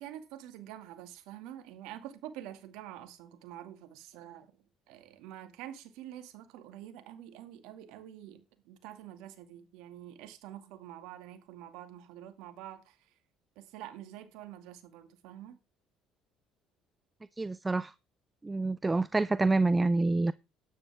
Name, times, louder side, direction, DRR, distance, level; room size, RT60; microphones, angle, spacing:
voice 1, 0.0-4.5 4.9-13.1 13.6-15.6, right 12 dB, 75° right, 2.2 m, -47 dB
voice 2, 17.4-17.9 18.4-20.3, right 3 dB, 20° right, 0.5 m, -27 dB
12.5 x 10.5 x 3.5 m
supercardioid pair, 80°, 0 cm